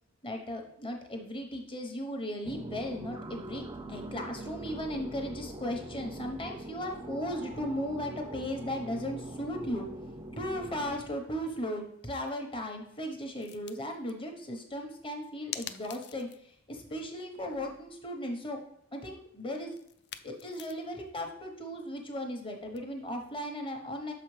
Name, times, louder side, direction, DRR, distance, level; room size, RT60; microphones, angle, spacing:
voice 1, 0.2-9.9 10.4-18.6 18.9-19.7 20.2-24.1, equal, 25° left, 3 dB, 0.9 m, -36 dB
sound 1, 2.4-11.0, right 1 dB, 15° right, 0.4 m, -43 dB
sound 2, 11.5-11.7 12.1-12.3 13.4-14.1 15.5-16.5 16.8-16.9 17.3-18.0 19.7-21.0 22.8-22.9, left 10 dB, 55° left, 0.3 m, -45 dB
6.4 x 4.9 x 3.2 m, 0.75 s
head